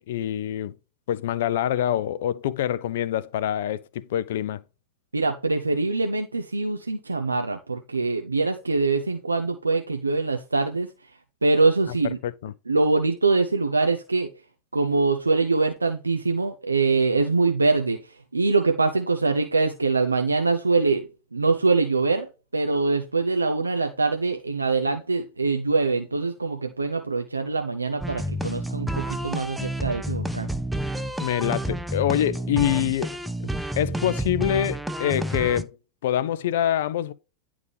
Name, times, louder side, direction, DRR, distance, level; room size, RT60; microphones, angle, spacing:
voice 1, 0.1-0.7 1.1-4.6 12.2-12.5 31.2-33.2 33.4-35.8 36.0-37.1, left 11 dB, 55° left, 0.5 m, -25 dB
voice 2, 5.1-10.9 11.4-12.2 12.7-14.3 14.7-18.0 18.3-30.5, right 3 dB, 80° right, 0.6 m, -23 dB
sound 1, 28.0-35.6, right 1 dB, 5° right, 0.5 m, -29 dB
10.5 x 3.6 x 3.3 m
figure-of-eight pair, 90°, 0 cm